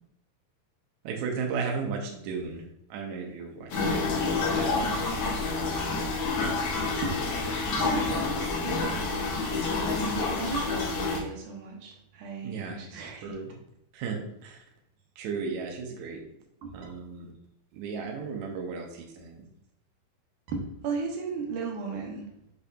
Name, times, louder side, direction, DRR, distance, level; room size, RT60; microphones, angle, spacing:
voice 1, 1.0-2.6 2.9-4.1 4.3-5.3 12.4-12.8 13.2-13.5 13.9-14.6 15.2-16.2 16.7-17.3 17.7-19.5, right 5 dB, 85° right, 1 dB, 1.7 m, -35 dB
draining the tub, 3.7-11.2, left 3 dB, 85° left, 1.4 m, -28 dB
voice 2, 7.4-13.4 16.6-16.7 20.5-22.3, right 4 dB, 70° right, 0 dB, 2.2 m, -36 dB
8.1 x 5.2 x 2.3 m, 0.77 s
omnidirectional pair, 4.4 m